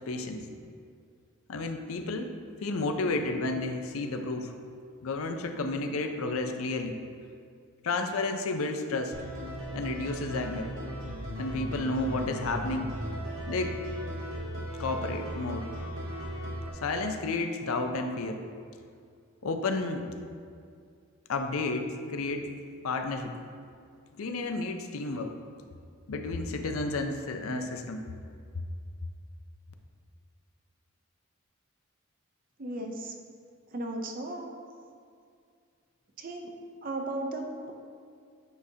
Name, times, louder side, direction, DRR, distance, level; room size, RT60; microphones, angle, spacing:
voice 1, 0.1-0.4 1.5-2.3 2.6-4.5 5.0-7.0 7.8-9.1 9.7-10.7 11.4-12.9 13.5-13.7 14.8-15.7 16.8-18.4 19.4-20.0 21.3-22.5 22.8-23.3 24.2-25.4 26.1-28.0 28.5-28.6, left 3 dB, 80° left, 6 dB, 0.5 m, -31 dB
sound 1, 9.1-16.7, equal, 65° right, 1.6 m, -37 dB
voice 2, 32.6-33.1 33.7-34.5 36.2-36.5 36.8-37.7, right 2 dB, 40° right, 3 dB, 0.6 m, -35 dB
8.3 x 4.9 x 2.7 m, 2.3 s
head